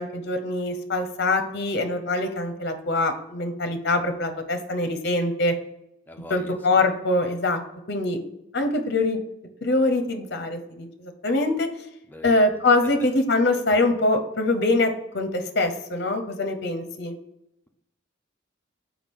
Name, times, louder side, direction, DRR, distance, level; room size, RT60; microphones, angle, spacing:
voice 1, 0.0-5.5 6.3-7.6 7.9-8.2 8.5-9.2 9.6-11.7 12.2-17.1, left 2 dB, 55° left, 7 dB, 0.6 m, -24 dB
voice 2, 6.1-6.6 12.1-12.4, left 1 dB, 10° left, 4 dB, 0.4 m, -42 dB
5.8 x 4.7 x 3.5 m, 0.84 s
head